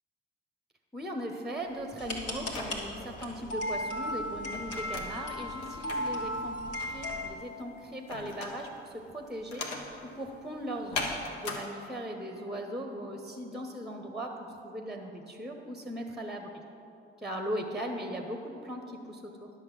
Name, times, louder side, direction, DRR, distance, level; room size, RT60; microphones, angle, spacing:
voice 1, 0.9-6.6 6.9-9.7 10.0-11.1 11.4-14.4 14.6-16.5 17.2-19.5, equal, ahead, 4 dB, 1.0 m, -38 dB
sound 1, 1.6-11.6, left 3 dB, 75° left, 1.0 m, -41 dB
sound 2, 2.0-7.3, left 1 dB, 55° left, 1.7 m, -36 dB
10.5 x 6.2 x 6.0 m, 2.8 s
figure-of-eight pair, 45°, 30 cm